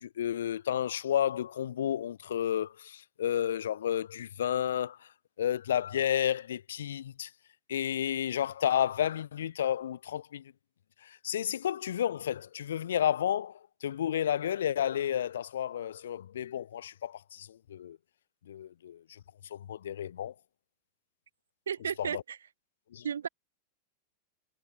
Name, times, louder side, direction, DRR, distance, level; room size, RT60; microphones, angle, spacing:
voice 1, 0.0-5.0 5.4-7.3 7.7-10.4 11.0-18.0 18.5-19.2 19.5-20.3 22.0-22.2 22.9-23.1, left 10 dB, 65° left, 0.5 m, -31 dB
voice 2, 21.7-22.4 23.0-23.3, right 8 dB, 70° right, 1.1 m, -33 dB
figure-of-eight pair, 90°, 0 cm